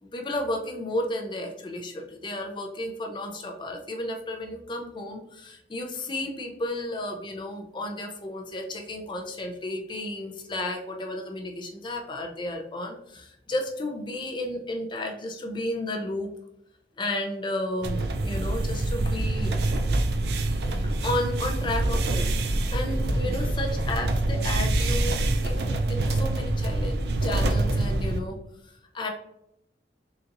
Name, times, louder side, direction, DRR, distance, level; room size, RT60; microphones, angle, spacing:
voice 1, 0.0-16.3 17.0-19.6 20.8-28.4 28.6-29.1, left 1 dB, 25° left, 3 dB, 0.5 m, -33 dB
sound 1, 17.8-28.2, right 2 dB, 65° right, 0.4 m, -26 dB
3.9 x 2.8 x 2.5 m, 0.80 s
head